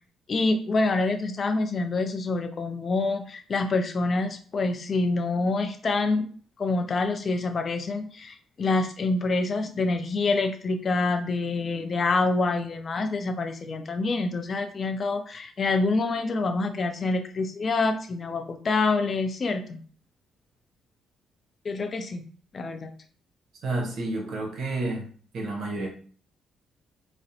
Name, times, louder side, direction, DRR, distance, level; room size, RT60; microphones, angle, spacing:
voice 1, 0.3-6.3 6.6-19.8 21.6-22.3 22.5-22.9, left 3 dB, 45° left, 7 dB, 0.3 m, -26 dB
voice 2, 23.6-25.1 25.3-25.9, right 2 dB, 70° right, 1 dB, 0.7 m, -30 dB
2.4 x 2.0 x 2.7 m, 0.43 s
cardioid pair, 90°, 0 cm